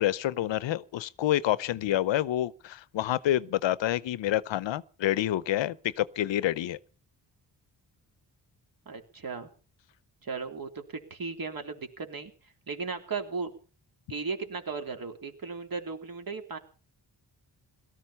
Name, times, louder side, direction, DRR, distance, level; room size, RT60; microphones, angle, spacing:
voice 1, 0.0-6.8, left 13 dB, 90° left, 0.8 m, -28 dB
voice 2, 8.8-9.5 10.2-13.5 14.1-16.6, right 4 dB, 50° right, 3.4 m, -36 dB
17.5 x 14.0 x 5.6 m
cardioid pair, 70°, 43 cm